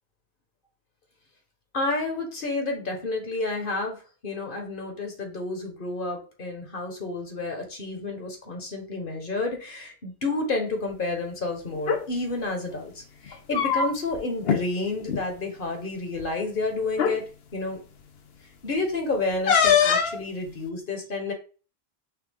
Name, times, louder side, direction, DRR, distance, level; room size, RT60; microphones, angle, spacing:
voice 1, 1.7-17.2 17.5-17.8 18.6-21.3, left 3 dB, 55° left, 2 dB, 1.3 m, -30 dB
sound 1, 11.7-12.0 13.3-14.2 14.4-14.6 15.0-15.2 16.2-16.3 16.9-17.2 19.5-20.2, left 7 dB, 75° left, 1.0 m, -22 dB
5.9 x 2.3 x 3.6 m, 0.36 s
omnidirectional pair, 1.1 m